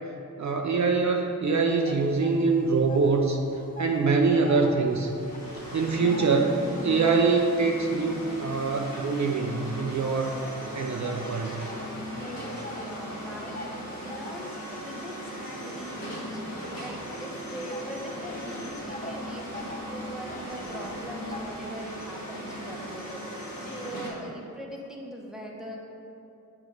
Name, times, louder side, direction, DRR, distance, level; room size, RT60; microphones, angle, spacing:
voice 1, 0.4-3.4 3.8-5.2 5.7-10.4 10.7-11.7, right 4 dB, 55° right, 2 dB, 0.5 m, -24 dB
sound 1, 1.7-3.2 3.5-7.2 7.8-9.8 10.4-21.5, left 2 dB, 25° left, 0.5 m, -44 dB
sound 2, 4.9-24.1, equal, 75° left, 1.5 m, -38 dB
voice 2, 12.1-25.8, equal, ahead, -2 dB, 1.0 m, -41 dB
6.3 x 3.3 x 4.6 m, 2.8 s
cardioid pair, 45°, 35 cm